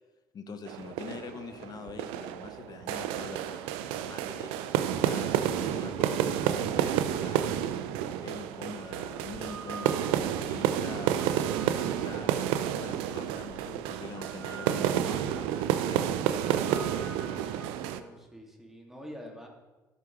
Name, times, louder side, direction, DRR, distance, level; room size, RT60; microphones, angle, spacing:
voice 1, 0.3-4.5 4.9-7.5 8.2-11.2 12.0-17.1, left 5 dB, 40° left, 8 dB, 1.0 m, -44 dB
sound 1, 0.7-18.0, right 10 dB, 70° right, 0.5 m, -30 dB
sound 2, 8.6-12.6 13.4-18.1, right 4 dB, 85° right, 1.0 m, -48 dB
voice 2, 17.9-19.5, equal, 5° right, 0 dB, 2.3 m, -46 dB
12.0 x 6.8 x 3.2 m, 1.1 s
figure-of-eight pair, 50°, 10 cm